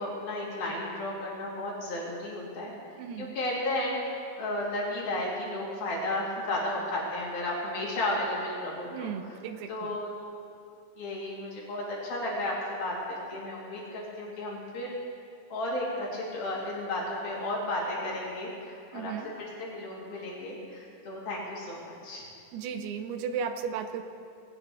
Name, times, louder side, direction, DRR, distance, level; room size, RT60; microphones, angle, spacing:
voice 1, 0.0-2.7 3.2-9.1 9.7-10.1 11.0-14.9 15.5-19.1 19.4-22.3, left 1 dB, 65° left, -5 dB, 4.4 m, -33 dB
voice 2, 3.0-3.4 8.9-10.0 18.9-19.3 22.5-24.0, right 7 dB, 80° right, 7 dB, 2.6 m, -35 dB
21.0 x 17.5 x 3.5 m, 2.5 s
omnidirectional pair, 4.6 m